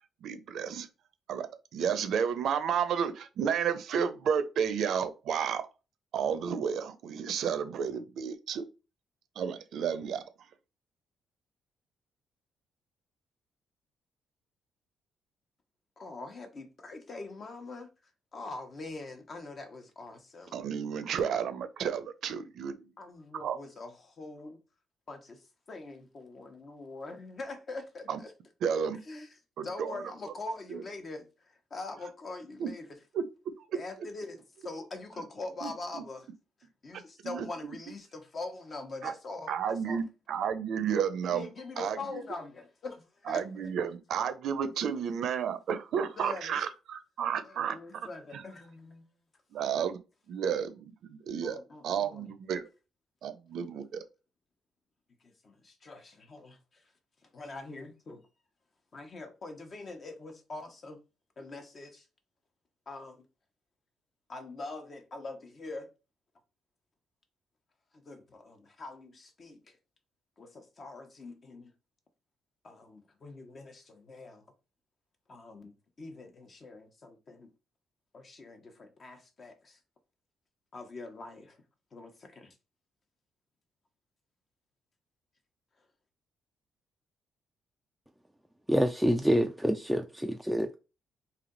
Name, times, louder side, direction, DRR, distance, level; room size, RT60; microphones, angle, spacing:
voice 1, 0.2-0.9 1.3-5.6 6.1-8.7 9.4-10.2 20.5-22.9 23.3-23.6 28.1-28.2 28.6-29.0 29.6-30.1 30.7-30.8 32.6-32.7 33.1-33.2 35.6-36.0 37.2-37.5 39.0-39.1 39.5-41.5 41.8-42.2 43.3-48.4 49.5-50.0 50.3-51.6 51.8-52.7 53.2-54.0, right 7 dB, 70° right, 0.6 m, -32 dB
voice 2, 16.0-17.9 18.3-20.6 23.0-24.6 25.1-25.4 25.7-28.3 29.1-29.3 29.6-32.9 33.7-36.3 36.8-40.0 41.3-43.7 46.2-46.6 47.4-49.1 51.4-52.3 55.2-56.6 57.3-58.2 58.9-61.0 61.4-62.0 62.9-63.2 64.3-65.9 68.0-69.7 70.4-71.7 72.6-74.5 75.3-77.5 78.1-79.8 80.7-81.6 81.9-82.5, left 3 dB, 45° left, 1.0 m, -43 dB
voice 3, 88.7-90.7, equal, ahead, 0.4 m, -27 dB
3.3 x 2.8 x 3.9 m
cardioid pair, 90°, 0 cm